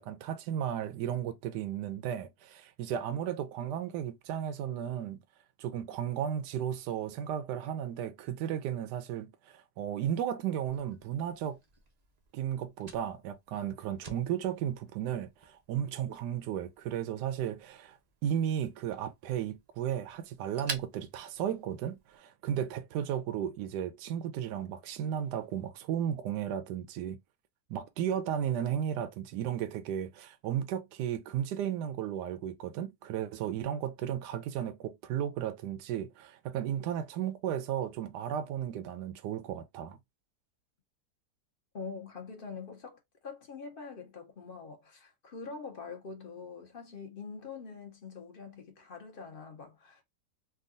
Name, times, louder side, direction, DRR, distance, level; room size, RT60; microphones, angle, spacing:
voice 1, 0.0-5.2 5.6-11.6 12.3-27.2 27.7-40.0, right 9 dB, 85° right, 1.2 m, -34 dB
Fire, 10.7-22.2, right 4 dB, 70° right, 0.3 m, -50 dB
voice 2, 41.7-50.0, left 5 dB, 45° left, 0.8 m, -44 dB
3.6 x 2.3 x 2.4 m
omnidirectional pair, 1.7 m